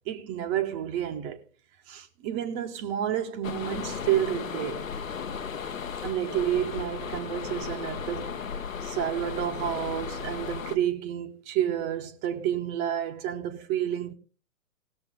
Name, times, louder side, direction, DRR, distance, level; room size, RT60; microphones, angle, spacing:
voice 1, 0.1-1.4 1.9-4.9 6.0-8.4 8.8-14.1, right 10 dB, 15° right, 0.8 m, -30 dB
sound 1, 3.4-10.8, left 6 dB, 65° left, 1.1 m, -35 dB
19.0 x 7.0 x 3.8 m
figure-of-eight pair, 125°, 44 cm